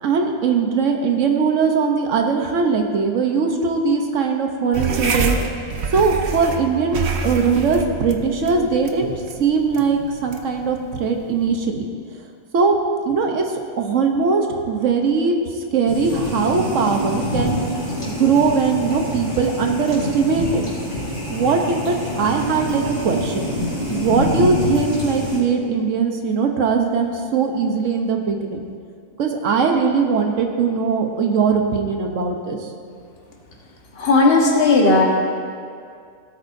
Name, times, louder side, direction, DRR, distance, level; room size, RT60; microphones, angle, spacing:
voice 1, 0.0-5.3 5.9-11.9 12.5-12.7 13.0-13.4 13.8-15.3 15.7-17.6 18.1-20.6 21.3-23.5 23.9-28.6 29.2-32.6, right 5 dB, 80° right, 3 dB, 1.2 m, -20 dB
sound 1, 4.7-11.6, right 4 dB, 65° right, 1.0 m, -27 dB
sound 2, 15.8-25.4, left 1 dB, 30° left, 3.1 m, -26 dB
voice 2, 34.0-35.0, left 3 dB, 50° left, -1 dB, 1.5 m, -15 dB
16.5 x 9.0 x 2.6 m, 2.2 s
omnidirectional pair, 1.3 m